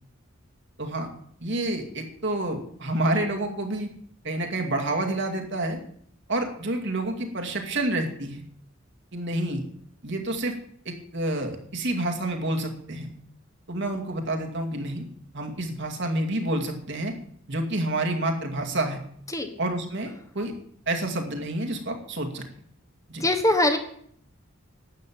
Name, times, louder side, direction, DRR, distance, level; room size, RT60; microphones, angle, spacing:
voice 1, 0.8-1.1 1.4-3.9 4.2-5.8 6.3-8.4 9.1-9.6 10.0-10.6 10.9-13.1 13.7-15.1 15.3-17.1 17.5-19.0 19.6-20.5 20.9-22.4 23.1-23.2, right 1 dB, 60° right, 3 dB, 2.3 m, -28 dB
voice 2, 23.2-23.8, left 1 dB, 15° left, 6 dB, 1.4 m, -22 dB
12.0 x 7.6 x 8.7 m, 0.64 s
head